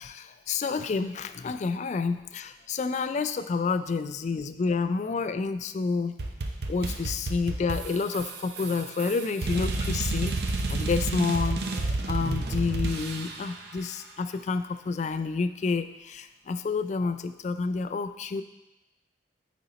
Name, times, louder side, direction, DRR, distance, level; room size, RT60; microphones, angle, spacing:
voice 1, 0.0-6.1 6.7-10.3 10.7-18.4, left 4 dB, 40° left, 10 dB, 0.3 m, -29 dB
sound 1, 6.2-13.6, right 2 dB, 60° right, 0.6 m, -30 dB
8.8 x 4.2 x 4.0 m, 0.97 s
head